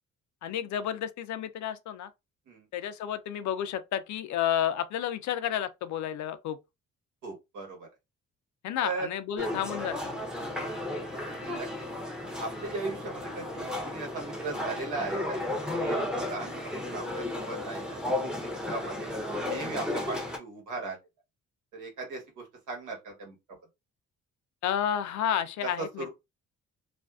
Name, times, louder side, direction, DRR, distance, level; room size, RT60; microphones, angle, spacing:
voice 1, 0.4-2.1 2.7-6.6 8.6-10.2 24.6-26.1, left 10 dB, 70° left, 0.5 m, -31 dB
voice 2, 7.2-7.9 8.8-9.1 10.4-10.9 11.4-11.7 12.4-15.4 15.8-18.1 18.7-19.1 19.4-21.0 21.7-23.3 25.6-26.1, right 3 dB, 85° right, 1.2 m, -38 dB
sound 1, 9.4-20.4, left 1 dB, 5° right, 0.6 m, -34 dB
2.5 x 2.2 x 2.3 m
cardioid pair, 90°, 30 cm